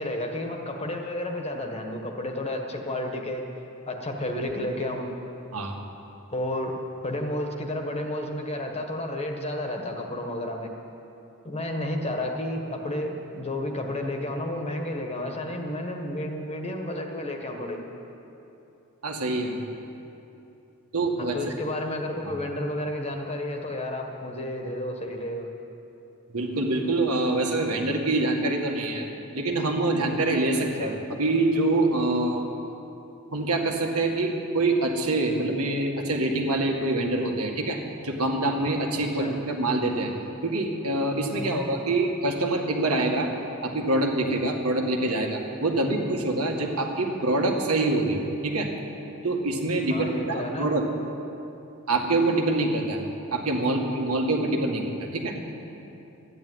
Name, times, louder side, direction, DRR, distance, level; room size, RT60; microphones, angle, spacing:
voice 1, 0.0-3.5 3.9-5.1 6.3-6.8 7.0-10.7 11.4-17.8 21.2-25.5 30.5-30.9 38.9-39.3 41.3-41.6 45.7-46.0 49.9-50.7, left 1 dB, 30° left, 2 dB, 1.5 m, -31 dB
voice 2, 19.0-19.6 20.9-21.3 26.3-29.1 29.3-32.4 33.3-37.8 38.0-40.1 40.4-43.3 43.6-48.7 49.2-50.8 51.9-53.0 53.3-55.4, right 2 dB, 75° right, 1 dB, 2.0 m, -25 dB
13.5 x 11.0 x 9.5 m, 2.9 s
head